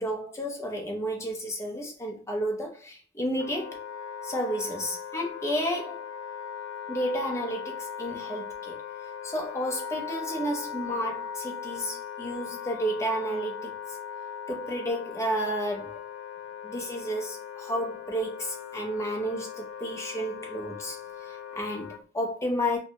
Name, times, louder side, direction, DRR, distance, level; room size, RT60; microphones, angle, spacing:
voice 1, 0.0-3.8 4.2-6.1 6.9-8.8 9.2-13.7 14.5-15.9 16.6-21.0 21.3-22.8, equal, 15° left, 0.5 m, -31 dB
Wind instrument woodwind instrument, 3.4-22.0, left 8 dB, 85° left, 0.5 m, -39 dB
2.6 x 2.1 x 2.8 m
head